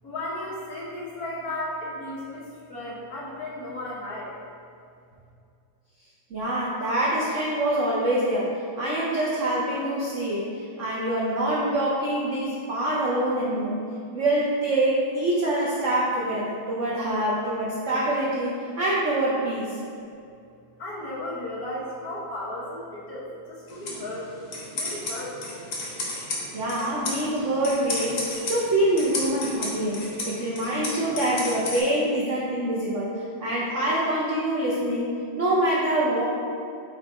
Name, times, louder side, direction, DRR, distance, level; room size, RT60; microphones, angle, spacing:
voice 1, 0.0-4.4 20.8-24.3 24.7-25.4, left 1 dB, 55° left, -7 dB, 1.9 m, -35 dB
voice 2, 6.3-10.5 10.8-13.8 14.1-18.5 18.8-19.8 26.5-33.1 33.4-35.1 35.4-36.2, right 1 dB, 55° right, -6 dB, 0.9 m, -25 dB
sound 1, 23.7-31.8, left 2 dB, 75° left, 2.0 m, -34 dB
7.9 x 3.2 x 4.1 m, 2.4 s
omnidirectional pair, 2.0 m